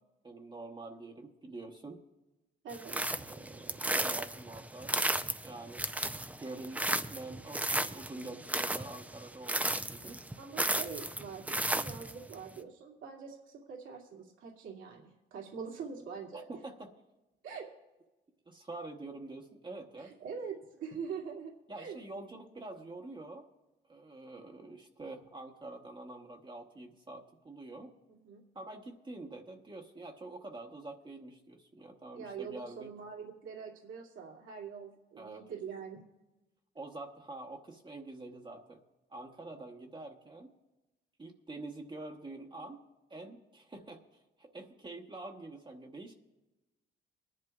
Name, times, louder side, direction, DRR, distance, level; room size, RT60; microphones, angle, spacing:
voice 1, 0.2-2.0 2.9-5.0 5.4-10.2 16.5-16.9 18.5-20.2 21.7-23.5 23.9-27.9 28.5-32.9 35.2-35.5 36.7-38.8 39.1-40.5 41.2-42.8 43.1-46.1, right 2 dB, 25° right, 1 dB, 1.0 m, -46 dB
voice 2, 2.6-2.9 10.4-16.4 17.4-17.7 20.0-21.5 21.8-22.0 28.2-28.4 32.1-36.0, right 6 dB, 85° right, -2 dB, 2.3 m, -44 dB
sound 1, 2.7-12.3, right 1 dB, 5° right, 0.5 m, -34 dB
22.5 x 11.0 x 2.4 m, 1.0 s
cardioid pair, 90°, 20 cm